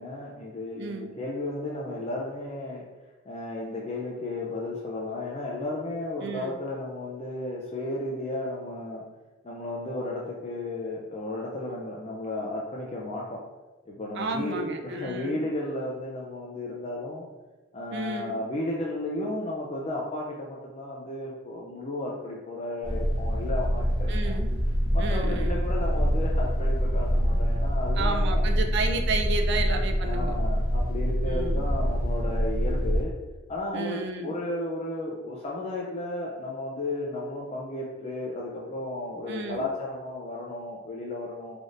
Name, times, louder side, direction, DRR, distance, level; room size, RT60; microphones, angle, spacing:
voice 1, 0.0-2.8 3.3-9.0 9.4-13.4 13.9-17.2 17.7-24.4 24.9-28.4 30.0-33.1 33.5-41.6, left 2 dB, 30° left, -3 dB, 0.4 m, -34 dB
voice 2, 0.7-1.1 6.2-6.5 14.2-15.4 17.9-18.4 24.1-24.6 25.0-25.6 28.0-30.4 31.2-31.6 33.7-34.3 39.3-39.7, right 3 dB, 55° right, 4 dB, 0.4 m, -32 dB
sound 1, 22.8-33.0, equal, 60° left, 1.0 m, -25 dB
3.9 x 3.4 x 2.5 m, 1.2 s
head